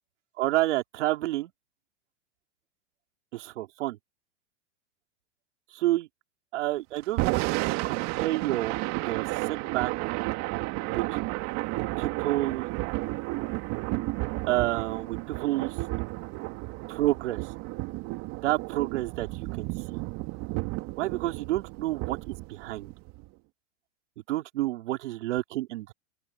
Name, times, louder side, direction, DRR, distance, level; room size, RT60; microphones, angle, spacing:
voice 1, 0.4-1.5 3.3-4.0 5.7-6.1 6.5-9.9 10.8-11.2 12.0-12.7 14.5-15.7 16.9-17.5 18.4-20.0 21.0-22.9 24.3-25.9, right 16 dB, 70° right, 3.8 m, -29 dB
Thunder / Rain, 7.0-23.3, right 22 dB, 45° right, 2.0 m, -32 dB
open air
hypercardioid pair, 115°, 37 cm